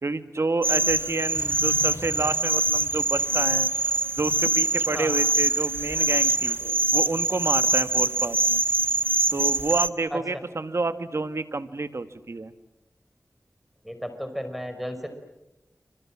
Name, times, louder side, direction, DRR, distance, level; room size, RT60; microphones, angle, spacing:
voice 1, 0.0-3.7 4.2-6.6 6.9-8.6 9.3-12.5, right 3 dB, 60° right, 11 dB, 1.7 m, -29 dB
sound 1, 0.6-9.9, right 3 dB, 40° right, 1.1 m, -24 dB
sound 2, 1.3-3.5 4.2-4.5 4.8-6.7, left 2 dB, 55° left, 4.0 m, -43 dB
voice 2, 13.8-15.1, equal, ahead, 8 dB, 5.2 m, -33 dB
28.5 x 26.0 x 7.5 m, 0.88 s
wide cardioid pair, 55°, 5 cm